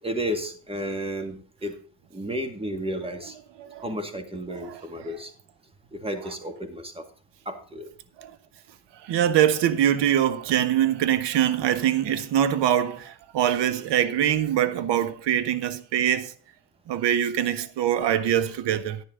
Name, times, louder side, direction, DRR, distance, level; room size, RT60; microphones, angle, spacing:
voice 1, 0.0-1.8 2.1-3.4 3.8-5.3 5.9-7.0 7.5-7.9, equal, 15° right, 2.0 m, -32 dB
voice 2, 4.5-5.1 6.2-6.3 8.2-8.3 9.0-16.3 16.9-19.0, right 10 dB, 70° right, 1.2 m, -24 dB
10.5 x 10.5 x 3.8 m
cardioid pair, 100°, 43 cm